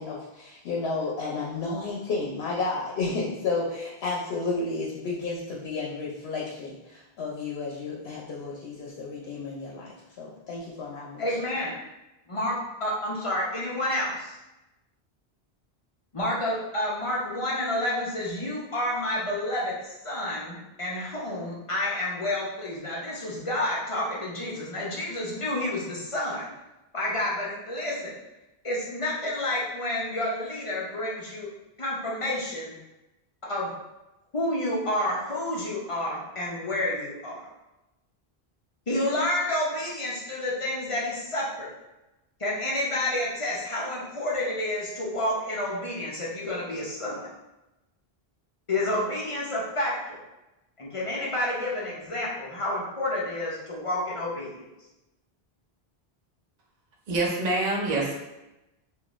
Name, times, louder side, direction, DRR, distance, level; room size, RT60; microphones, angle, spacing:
voice 1, 0.0-9.9 10.2-11.4, left 3 dB, 85° left, -4 dB, 0.8 m, -32 dB
voice 2, 11.2-11.7 12.3-12.5 12.8-14.4 16.1-26.5 26.9-28.1 28.6-31.5 31.8-32.7 33.4-33.7 34.3-37.4 38.9-41.7 42.4-47.3 48.7-50.2 50.8-54.6, left 1 dB, 40° left, -5 dB, 0.6 m, -29 dB
voice 3, 57.1-58.2, right 2 dB, 50° right, -2 dB, 0.7 m, -26 dB
3.6 x 2.5 x 2.4 m, 0.98 s
omnidirectional pair, 1.0 m